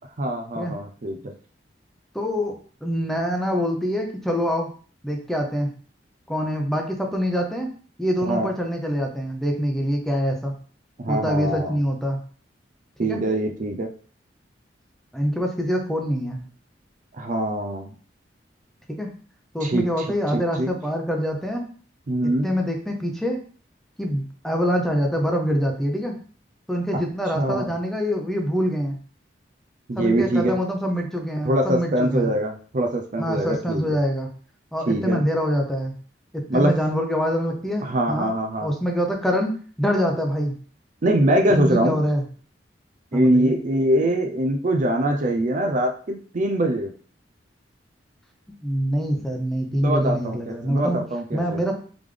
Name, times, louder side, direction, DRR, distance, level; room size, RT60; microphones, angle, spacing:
voice 1, 0.2-1.2 8.2-8.5 11.0-11.8 13.0-13.9 17.1-17.9 19.6-20.1 20.3-20.7 22.1-22.5 26.9-27.0 27.4-27.7 29.9-30.6 31.4-33.9 34.9-35.2 36.5-36.7 37.8-38.7 41.0-42.0 43.1-46.9 49.7-51.6, right 1 dB, 45° right, 3 dB, 0.5 m, -23 dB
voice 2, 2.1-2.6 2.8-4.7 5.0-5.7 6.3-7.7 8.0-10.5 11.1-12.2 13.1-13.2 15.1-16.4 19.0-19.1 19.5-21.7 22.4-23.4 24.0-26.2 26.7-29.0 30.0-32.3 33.2-34.3 34.7-35.9 36.3-38.3 38.6-40.6 41.5-42.2 43.1-43.6 48.6-51.0 51.3-51.7, equal, ahead, 2 dB, 0.7 m, -25 dB
3.7 x 3.5 x 3.3 m, 0.43 s
head